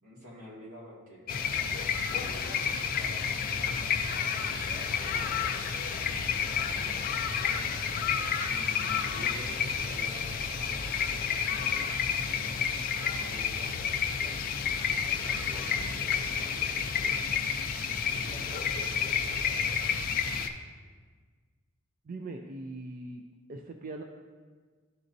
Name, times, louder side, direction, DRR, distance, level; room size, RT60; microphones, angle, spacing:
voice 1, 0.0-1.3 1.9-5.4 6.0-7.7 8.5-17.5 18.1-19.7, equal, 80° right, -5 dB, 1.8 m, -49 dB
sound 1, 1.3-20.5, left 6 dB, 40° left, 0.4 m, -30 dB
voice 2, 22.0-23.2 23.5-24.0, right 2 dB, 40° right, 3 dB, 0.3 m, -40 dB
12.0 x 4.1 x 2.6 m, 1.5 s
head